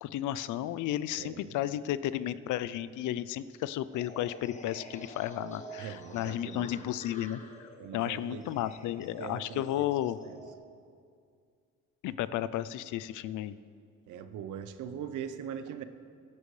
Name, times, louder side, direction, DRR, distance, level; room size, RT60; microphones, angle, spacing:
voice 1, 0.0-10.2 12.0-13.5, left 12 dB, 80° left, 15 dB, 0.5 m, -33 dB
sound 1, 3.9-10.5, equal, 25° left, 1.3 m, -49 dB
voice 2, 5.8-6.7 7.8-8.4 9.2-9.9 10.3-10.4 14.1-15.8, right 8 dB, 80° right, 11 dB, 0.8 m, -41 dB
16.5 x 10.5 x 3.2 m, 2.3 s
cardioid pair, 90°, 30 cm